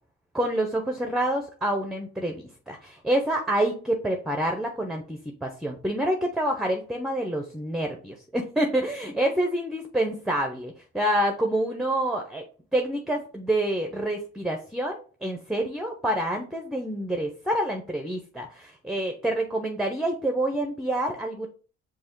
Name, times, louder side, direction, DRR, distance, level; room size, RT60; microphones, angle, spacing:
voice 1, 0.3-12.4 12.7-21.5, right 1 dB, ahead, 4 dB, 0.6 m, -27 dB
5.4 x 2.0 x 4.5 m, 0.39 s
cardioid pair, 90°, 30 cm